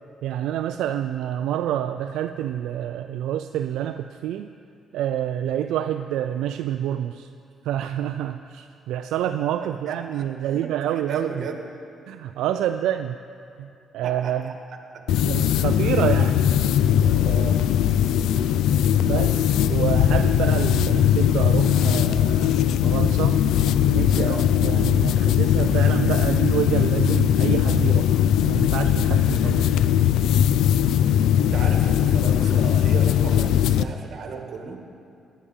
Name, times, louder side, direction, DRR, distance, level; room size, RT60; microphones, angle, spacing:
voice 1, 0.2-4.5 4.9-7.3 7.6-11.3 12.1-13.2 13.6-13.7 13.9-14.5 15.2-16.3 19.0-23.4 23.9-29.7, right 11 dB, 90° right, 8 dB, 0.4 m, -27 dB
voice 2, 9.6-11.6 14.0-14.5 14.9-15.1 15.8-16.0 17.0-17.6 24.1-24.5 31.4-34.8, right 5 dB, 60° right, 3 dB, 1.9 m, -35 dB
sound 1, 15.1-33.8, left 10 dB, 85° left, 0.4 m, -20 dB
18.5 x 10.0 x 5.5 m, 2.5 s
cardioid pair, 90°, 0 cm